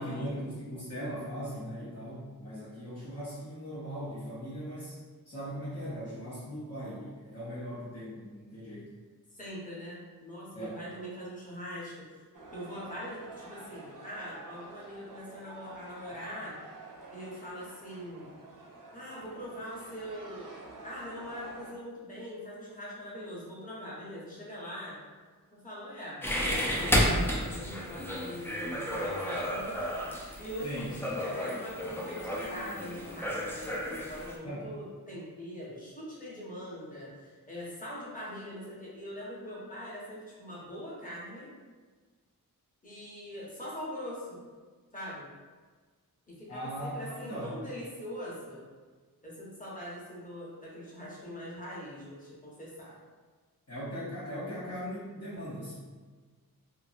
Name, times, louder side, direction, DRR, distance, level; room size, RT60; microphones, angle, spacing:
voice 1, 0.0-5.0 5.3-8.9 10.5-10.8 30.6-30.9 34.4-34.7 46.5-47.5 53.7-55.7, equal, 40° left, -10 dB, 0.7 m, -39 dB
voice 2, 9.3-12.0 12.5-16.5 17.1-18.3 18.9-20.6 20.8-25.0 25.5-30.0 30.4-41.5 42.8-44.4 44.9-45.3 46.3-48.6 49.2-53.0, equal, 20° left, -7 dB, 1.0 m, -42 dB
sound 1, 12.3-21.7, right 2 dB, 60° right, 0.5 m, -49 dB
sound 2, 26.2-34.4, equal, 5° left, 0.4 m, -32 dB
2.8 x 2.6 x 2.4 m, 1.4 s
wide cardioid pair, 70°, 37 cm